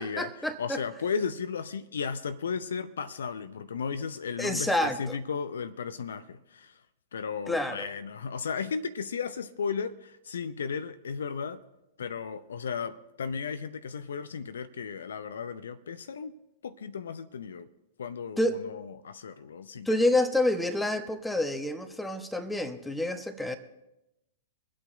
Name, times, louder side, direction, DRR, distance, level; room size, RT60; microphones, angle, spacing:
voice 1, 0.0-0.8 4.4-5.2 7.5-7.9 18.4-18.7 19.8-23.6, left 1 dB, 5° left, 7 dB, 1.2 m, -28 dB
voice 2, 0.6-6.7 7.1-11.6 12.0-16.3 16.6-17.7 18.0-19.9, left 6 dB, 65° left, 12 dB, 0.6 m, -35 dB
24.0 x 8.6 x 4.0 m, 0.91 s
figure-of-eight pair, 100°, 0 cm